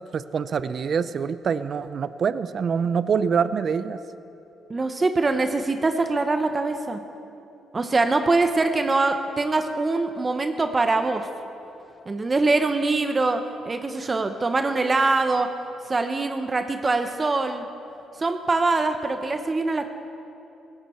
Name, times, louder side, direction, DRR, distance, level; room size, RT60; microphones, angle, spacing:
voice 1, 0.1-4.0, right 6 dB, 50° right, 14 dB, 0.5 m, -25 dB
voice 2, 4.7-7.0 7.7-11.3 12.1-15.5 15.9-17.6 18.2-19.9, right 3 dB, 30° right, 7 dB, 0.8 m, -23 dB
17.0 x 16.5 x 4.4 m, 2.8 s
cardioid pair, 90°, 0 cm